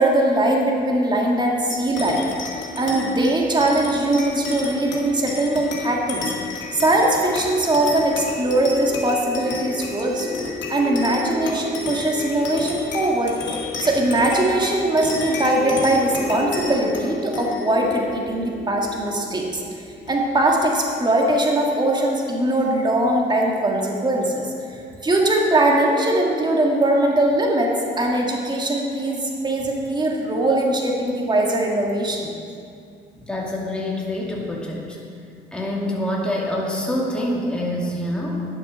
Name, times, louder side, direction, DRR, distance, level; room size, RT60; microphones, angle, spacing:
voice 1, 0.0-2.3 2.8-10.3 10.7-13.4 13.8-19.6 20.1-24.4 24.7-32.3, right 1 dB, 20° right, -1 dB, 1.8 m, -21 dB
sound 1, 1.7-20.5, left 2 dB, 70° left, 2.3 m, -31 dB
voice 2, 33.2-35.0 35.5-38.4, left 1 dB, 5° left, -4 dB, 2.1 m, -26 dB
11.0 x 7.3 x 6.2 m, 2.4 s
cardioid pair, 90°, 20 cm